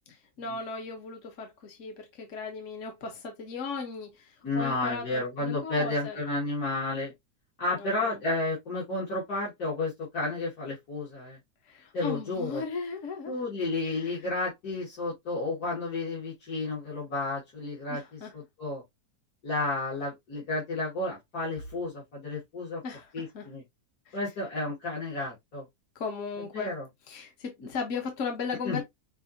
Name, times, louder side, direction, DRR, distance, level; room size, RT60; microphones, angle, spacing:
voice 1, 0.1-6.2 7.7-8.2 11.6-13.3 13.9-14.1 17.9-18.3 22.8-23.5 24.1-24.2 25.9-26.7 27.1-28.8, left 5 dB, 55° left, 1.4 m, -37 dB
voice 2, 4.4-7.1 7.6-11.4 11.9-12.6 13.3-18.8 19.4-22.8 23.1-23.6 24.1-25.6 26.5-26.8 28.6-28.8, left 2 dB, 70° left, 2.7 m, -32 dB
6.1 x 2.7 x 2.7 m
omnidirectional pair, 1.7 m